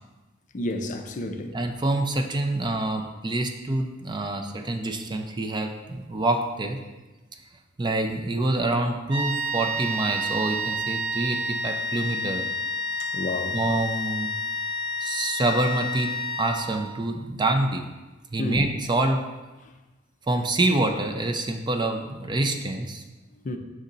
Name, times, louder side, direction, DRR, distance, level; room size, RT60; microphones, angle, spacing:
voice 1, 0.5-1.6 13.0-13.6 18.4-18.6 23.4-23.6, left 1 dB, 40° left, 0.5 m, -30 dB
voice 2, 1.5-6.8 7.8-12.5 13.5-14.4 15.0-16.1 16.4-17.9 18.3-19.2 20.3-23.0, right 2 dB, 25° right, 0.4 m, -26 dB
sound 1, 9.1-17.0, equal, 70° right, 1.6 m, -30 dB
6.3 x 4.1 x 3.9 m
head